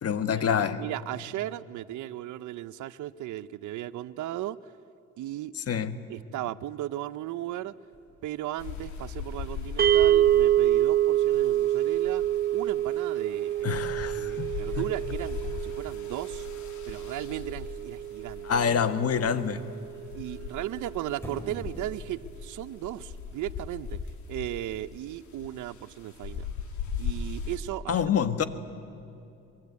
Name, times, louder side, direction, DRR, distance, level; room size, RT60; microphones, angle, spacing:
voice 1, 0.0-0.8 5.5-6.0 13.6-14.8 18.4-19.6 27.9-28.5, left 7 dB, 50° left, 11 dB, 1.4 m, -27 dB
voice 2, 0.8-4.6 5.2-5.5 6.1-7.7 8.2-12.2 12.5-13.8 14.2-16.5 16.9-18.5 20.1-24.0 24.3-26.5 27.0-28.0, right 14 dB, 75° right, 14 dB, 0.6 m, -36 dB
sound 1, 7.5-22.6, equal, 10° left, 6.7 m, -52 dB
sound 2, 8.6-27.6, left 6 dB, 75° left, 2.9 m, -40 dB
sound 3, 9.8-20.1, right 12 dB, 30° right, 0.8 m, -27 dB
23.5 x 22.0 x 9.4 m, 2.6 s
cardioid pair, 90°, 30 cm